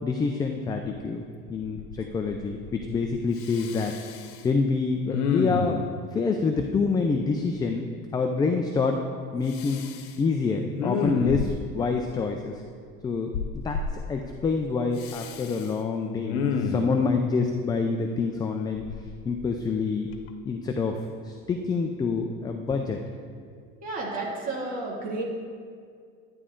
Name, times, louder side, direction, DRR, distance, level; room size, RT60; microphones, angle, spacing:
voice 1, 0.0-1.2 1.5-3.9 4.4-5.8 6.1-7.9 8.1-9.0 9.3-9.9 10.2-12.6 13.0-13.8 14.1-18.8 19.2-20.1 20.4-21.0 21.2-23.0, left 4 dB, 15° left, 4 dB, 0.4 m, -27 dB
Respiratory sounds, 0.9-1.0 1.5-2.0 2.3-3.0 3.4-4.4 5.1-5.9 9.5-10.1 10.7-11.8 13.3-13.9 15.0-15.7 16.2-17.0 18.8-19.7 20.1-20.3, left 5 dB, 90° left, 0.9 m, -30 dB
voice 2, 23.8-25.2, right 2 dB, 25° right, -4 dB, 2.4 m, -32 dB
12.5 x 9.6 x 3.7 m, 2.2 s
cardioid pair, 155°, 30 cm